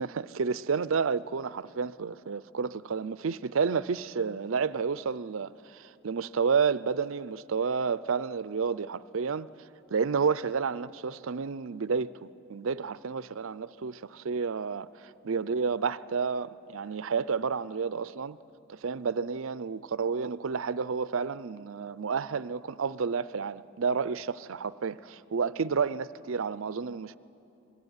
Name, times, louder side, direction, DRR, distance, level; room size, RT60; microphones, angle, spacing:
voice 1, 0.0-9.5 9.9-18.4 18.7-27.2, right 5 dB, 70° right, 0.5 m, -30 dB
24.5 x 21.0 x 9.7 m
head